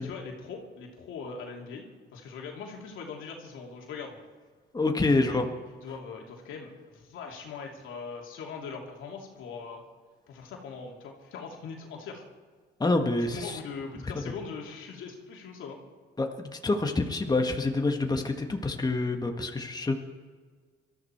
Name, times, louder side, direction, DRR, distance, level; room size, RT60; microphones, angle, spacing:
voice 1, 0.0-4.2 5.0-5.4 5.8-9.8 10.3-12.2 13.2-15.8, left 5 dB, 80° left, 0 dB, 2.8 m, -41 dB
voice 2, 4.7-5.5 12.8-13.6 16.2-19.9, left 2 dB, 20° left, 3 dB, 1.6 m, -27 dB
22.0 x 13.5 x 4.6 m, 1.5 s
cardioid pair, 90°, 20 cm